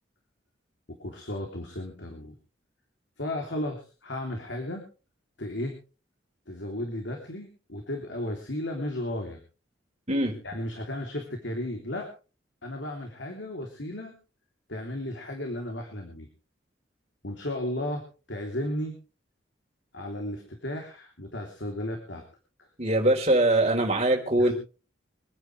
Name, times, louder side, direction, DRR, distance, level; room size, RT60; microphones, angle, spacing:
voice 1, 0.9-2.3 3.2-4.8 5.4-5.8 6.5-9.4 10.4-12.1 12.6-14.1 14.7-16.3 17.2-19.0 19.9-22.2 22.6-22.7 24.4-24.5, left 1 dB, 80° left, 2 dB, 3.3 m, -34 dB
voice 2, 22.8-24.5, right 1 dB, 35° right, 1 dB, 4.2 m, -22 dB
26.5 x 9.8 x 3.4 m, 0.35 s
head